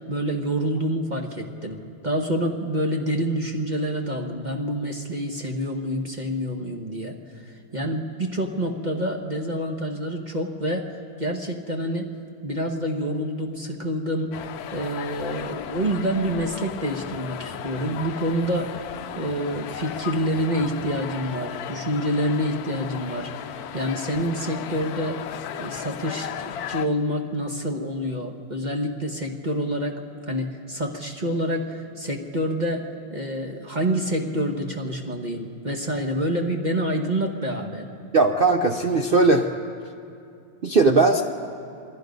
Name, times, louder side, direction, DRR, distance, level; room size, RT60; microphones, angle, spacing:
voice 1, 0.1-7.2 7.5-10.9 11.2-12.1 12.4-18.8 19.1-25.2 25.6-30.0 30.3-37.9, equal, 30° right, 2 dB, 1.1 m, -27 dB
sound 1, 14.3-26.9, left 9 dB, 65° left, 1.0 m, -35 dB
voice 2, 38.1-39.5 40.6-41.2, right 3 dB, 80° right, 4 dB, 0.5 m, -18 dB
27.5 x 20.5 x 5.3 m, 2.5 s
omnidirectional pair, 2.1 m